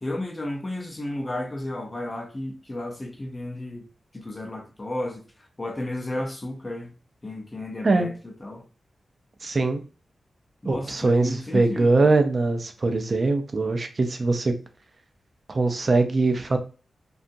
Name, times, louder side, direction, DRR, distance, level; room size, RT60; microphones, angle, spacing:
voice 1, 0.0-3.9 4.1-5.3 5.6-6.9 7.2-8.6 10.6-12.1, left 1 dB, 20° left, 0.6 m, -33 dB
voice 2, 9.4-9.8 10.7-14.5 15.5-16.6, right 3 dB, 35° right, 0.4 m, -22 dB
2.7 x 2.3 x 2.6 m
wide cardioid pair, 180°, 0 cm